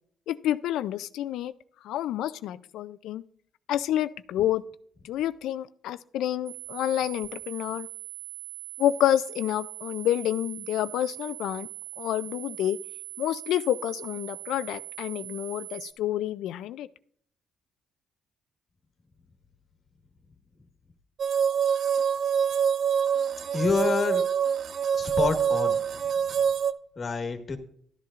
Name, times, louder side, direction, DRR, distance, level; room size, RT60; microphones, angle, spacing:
voice 1, 0.3-1.5 1.8-3.2 3.7-4.6 5.0-7.9 8.8-11.7 12.0-12.8 13.2-16.9, left 12 dB, 85° left, 15 dB, 0.4 m, -28 dB
sound 1, 6.5-15.9, right 24 dB, 80° right, 1.2 m, -41 dB
sound 2, 21.2-26.7, right 7 dB, 65° right, 0.4 m, -25 dB
voice 2, 23.5-24.2 25.0-25.8 27.0-27.6, left 4 dB, 40° left, 6 dB, 1.5 m, -27 dB
13.0 x 10.5 x 2.5 m, 0.62 s
cardioid pair, 90°, 0 cm